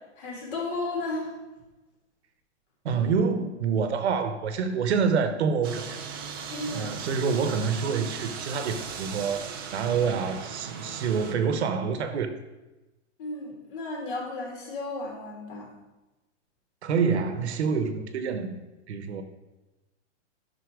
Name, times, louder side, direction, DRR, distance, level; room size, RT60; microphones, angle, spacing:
voice 1, 0.2-1.3 6.5-6.9 13.2-15.7, left 2 dB, 45° left, -2 dB, 3.4 m, -34 dB
voice 2, 2.8-6.0 6.7-12.3 16.8-18.6 18.9-19.2, right 5 dB, 65° right, 9 dB, 1.2 m, -27 dB
sound 1, 5.6-11.3, right 6 dB, 20° right, 0.4 m, -38 dB
11.5 x 5.9 x 4.8 m, 1.1 s
supercardioid pair, 170°, 36 cm